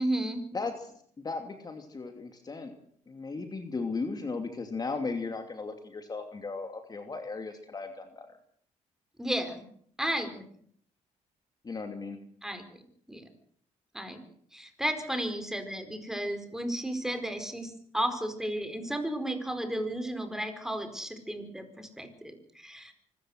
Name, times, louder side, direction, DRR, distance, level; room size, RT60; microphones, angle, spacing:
voice 1, 0.0-0.4 9.2-9.6 10.0-10.4 12.4-12.8 13.1-13.3 13.9-14.2 14.5-22.9, right 1 dB, 5° right, 8 dB, 4.6 m, -33 dB
voice 2, 0.5-2.7 3.1-8.3 11.6-12.2, left 4 dB, 30° left, 6 dB, 2.7 m, -36 dB
25.0 x 14.0 x 8.1 m, 0.63 s
cardioid pair, 100°, 14 cm